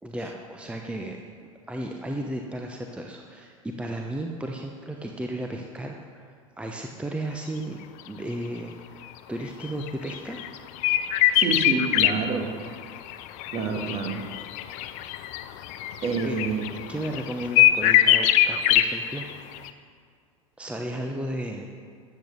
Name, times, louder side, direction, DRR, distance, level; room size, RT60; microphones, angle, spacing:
voice 1, 0.0-1.2 1.7-10.4 16.2-16.4 16.9-19.6 20.6-21.7, right 1 dB, 5° right, 2 dB, 0.9 m, -34 dB
sound 1, 9.7-12.1 12.8-19.2 19.6-19.7, left 13 dB, 45° left, 0.7 m, -22 dB
voice 2, 11.3-12.5 13.5-14.3 16.0-16.7, right 4 dB, 35° right, 4 dB, 1.9 m, -28 dB
13.5 x 7.9 x 6.6 m, 2.1 s
figure-of-eight pair, 80°, 18 cm